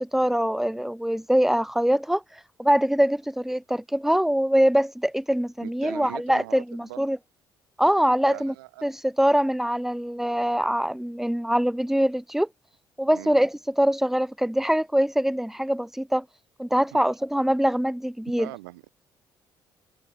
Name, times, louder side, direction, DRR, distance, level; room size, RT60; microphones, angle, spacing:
voice 1, 0.0-7.2 7.8-8.5 8.8-12.5 13.0-16.2 16.6-18.5, equal, 5° right, 1.5 m, -23 dB
voice 2, 5.6-7.0 8.2-8.9 13.1-13.4 16.9-17.0 18.4-18.9, right 21 dB, 85° right, 4.7 m, -41 dB
hypercardioid pair, 50°, 11 cm